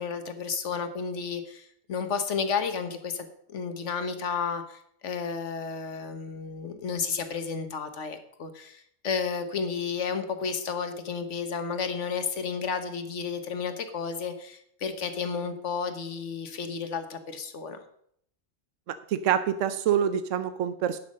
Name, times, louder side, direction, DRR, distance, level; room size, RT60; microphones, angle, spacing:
voice 1, 0.0-17.8, left 5 dB, 75° left, 8 dB, 1.4 m, -32 dB
voice 2, 18.9-21.0, right 9 dB, 85° right, 12 dB, 1.0 m, -26 dB
10.5 x 6.0 x 6.3 m, 0.69 s
omnidirectional pair, 1.3 m